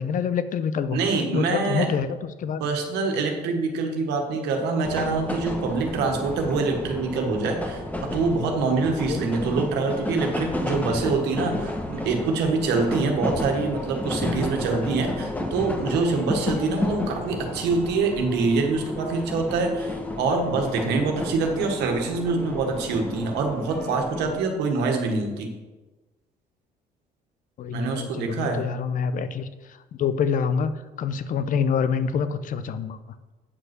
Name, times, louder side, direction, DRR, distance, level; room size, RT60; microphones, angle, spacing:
voice 1, 0.0-1.0 1.3-2.7 9.1-9.3 27.6-30.7 31.0-33.0, left 6 dB, 50° left, 13 dB, 0.7 m, -26 dB
voice 2, 0.9-1.9 2.6-25.5 27.7-28.6, right 4 dB, 85° right, 3 dB, 1.6 m, -25 dB
sound 1, 4.8-24.4, left 1 dB, 10° left, 1.2 m, -32 dB
8.5 x 5.4 x 6.0 m, 1.2 s
cardioid pair, 110°, 17 cm